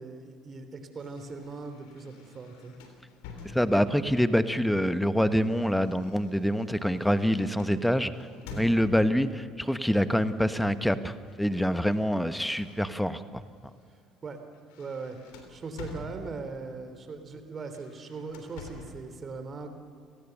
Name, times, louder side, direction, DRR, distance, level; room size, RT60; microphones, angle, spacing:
voice 1, 0.0-2.8 3.5-3.7 8.5-8.7 14.2-14.4 14.8-15.2 15.5-19.7, right 4 dB, 35° right, 7 dB, 3.2 m, -40 dB
sound 1, 1.0-4.1 5.0-9.2 10.3-10.6 10.9-13.2 13.7-13.9 14.3-16.7 17.6-19.1, left 4 dB, 70° left, 3.4 m, -48 dB
voice 2, 3.4-8.3 8.6-13.7, equal, 5° left, 12 dB, 1.3 m, -26 dB
30.0 x 18.5 x 6.8 m, 2.3 s
figure-of-eight pair, 55°, 0 cm